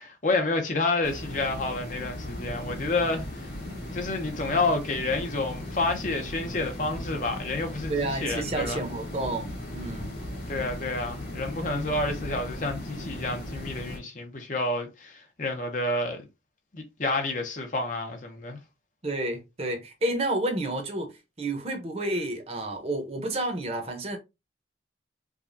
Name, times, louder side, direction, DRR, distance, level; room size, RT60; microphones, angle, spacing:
voice 1, 0.0-3.2 3.9-8.8 10.5-16.3 16.7-18.6, left 2 dB, 45° left, 0.8 m, -29 dB
sound 1, 1.0-14.0, left 1 dB, 60° left, 2.2 m, -37 dB
voice 2, 7.9-10.1 19.0-24.2, right 2 dB, 35° right, 0.8 m, -30 dB
4.8 x 2.3 x 2.6 m
head